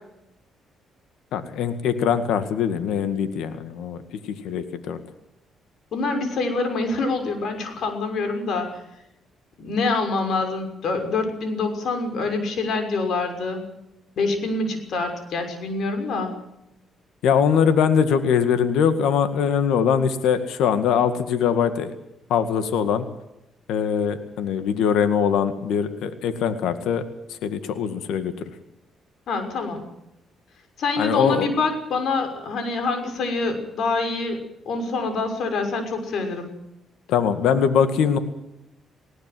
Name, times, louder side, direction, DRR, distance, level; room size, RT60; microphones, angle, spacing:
voice 1, 1.3-4.0 4.4-5.0 17.2-21.9 22.3-23.1 23.7-27.0 27.4-28.3 31.0-31.5 37.1-38.2, left 7 dB, 85° left, 9 dB, 2.0 m, -22 dB
voice 2, 5.9-8.8 9.6-13.7 14.2-16.3 29.3-29.8 30.8-34.4 34.6-36.5, left 3 dB, 65° left, 6 dB, 6.3 m, -26 dB
20.0 x 18.0 x 7.8 m, 0.86 s
cardioid pair, 90°, 0 cm